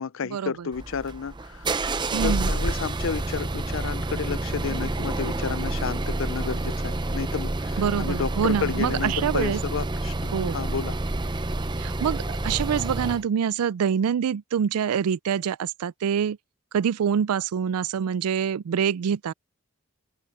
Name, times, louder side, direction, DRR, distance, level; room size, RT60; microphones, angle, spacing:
voice 1, 0.0-1.7 2.2-11.0, left 6 dB, 60° left, 0.5 m, -31 dB
sound 1, 0.7-13.2, right 2 dB, 20° right, 0.6 m, -28 dB
voice 2, 2.1-2.5 7.8-9.6 10.3-10.6 11.8-16.4 16.7-19.3, right 7 dB, 85° right, 0.4 m, -25 dB
open air
head